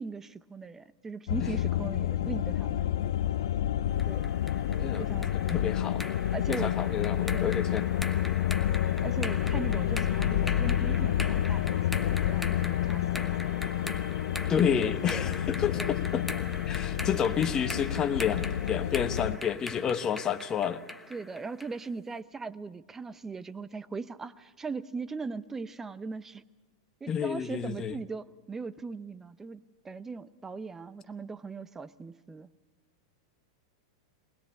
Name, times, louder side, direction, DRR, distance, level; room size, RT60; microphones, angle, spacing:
voice 1, 0.0-2.9 4.1-4.3 4.9-5.3 6.3-6.7 7.3-7.5 9.0-13.3 14.6-15.1 15.7-15.9 21.1-26.4 27.0-32.5, right 4 dB, 15° right, 15 dB, 0.8 m, -39 dB
sound 1, 1.3-19.4, left 11 dB, 70° left, 0.7 m, -29 dB
sound 2, 4.0-21.8, left 2 dB, 5° left, 1.1 m, -41 dB
voice 2, 4.7-5.1 5.3-6.0 6.5-7.9 14.5-16.3 16.7-20.8 27.1-27.9, left 8 dB, 25° left, 9 dB, 1.1 m, -30 dB
20.5 x 20.5 x 8.4 m, 1.2 s
hypercardioid pair, 100°, 2 cm